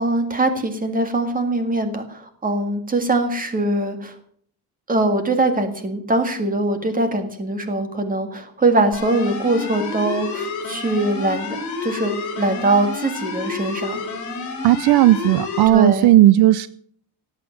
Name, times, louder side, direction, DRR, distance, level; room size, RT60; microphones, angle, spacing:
voice 1, 0.0-4.1 4.9-14.0 15.7-16.1, right 2 dB, 20° right, 1.9 m, -22 dB
sound 1, 8.9-15.7, left 4 dB, 45° left, 4.8 m, -29 dB
voice 2, 14.6-16.7, right 15 dB, 65° right, 0.6 m, -14 dB
17.5 x 8.4 x 7.8 m
cardioid pair, 170°, 42 cm